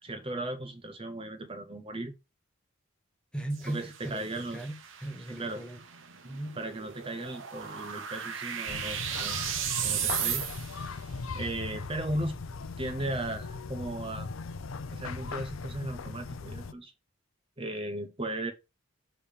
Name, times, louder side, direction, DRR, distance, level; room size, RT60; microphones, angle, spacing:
voice 1, 0.0-2.1 3.7-4.6 5.4-5.6 6.6-9.5 9.8-10.5 11.3-12.4 12.8-14.3 14.9-16.9 17.6-18.5, right 1 dB, 25° right, 0.8 m, -36 dB
voice 2, 3.3-5.8 6.2-6.6, right 1 dB, 5° left, 1.0 m, -38 dB
sound 1, 3.5-10.9, right 9 dB, 65° right, 1.1 m, -36 dB
sound 2, 8.7-16.7, left 4 dB, 80° left, 0.6 m, -39 dB
7.0 x 3.4 x 5.3 m
head